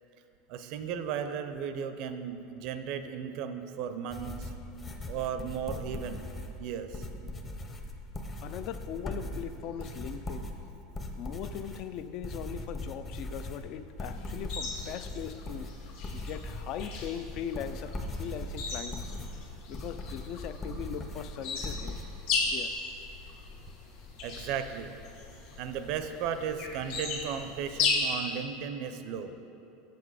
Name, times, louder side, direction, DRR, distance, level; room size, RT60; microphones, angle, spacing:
voice 1, 0.5-4.5 5.1-6.2 6.6-7.1 24.2-24.9 25.6-29.3, right 7 dB, 55° right, 9 dB, 0.5 m, -35 dB
sound 1, 4.1-22.0, left 1 dB, 20° left, 0.7 m, -40 dB
voice 2, 8.4-10.5 11.2-19.2 19.7-22.0 22.4-22.7, left 9 dB, 50° left, 11 dB, 0.4 m, -40 dB
sound 2, 14.0-27.9, left 5 dB, 65° left, 1.7 m, -37 dB
7.9 x 7.3 x 4.8 m, 2.8 s
supercardioid pair, 145°, 0 cm